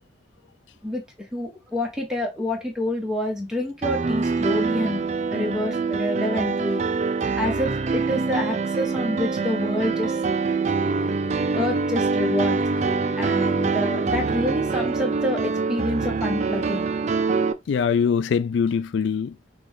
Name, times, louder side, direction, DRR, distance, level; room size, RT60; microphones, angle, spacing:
voice 1, 1.3-5.0 5.3-6.8 7.4-10.2 11.5-12.6 13.2-16.9, left 1 dB, 5° right, 1.1 m, -27 dB
Piano, 3.8-17.5, right 4 dB, 40° right, 0.4 m, -24 dB
voice 2, 17.7-19.5, left 6 dB, 75° left, 0.3 m, -23 dB
6.0 x 2.4 x 3.5 m
head